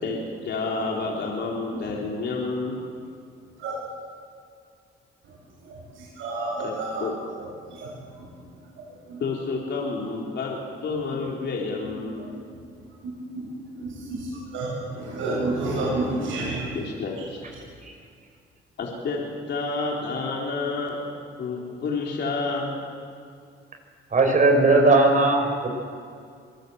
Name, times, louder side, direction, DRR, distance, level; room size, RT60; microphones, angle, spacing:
voice 1, 0.0-2.8 6.6-6.7 7.0-7.1 9.2-12.3 16.7-17.4 18.8-21.0 21.4-22.8, left 3 dB, 60° left, -2 dB, 3.6 m, -29 dB
voice 2, 5.6-7.0 7.4-9.2 12.0-12.4 13.0-16.7, right 2 dB, 85° right, -5 dB, 7.9 m, -31 dB
voice 3, 24.1-25.7, right 2 dB, 40° right, 3 dB, 5.1 m, -18 dB
24.5 x 18.5 x 8.0 m, 2.2 s
cardioid pair, 90°, 20 cm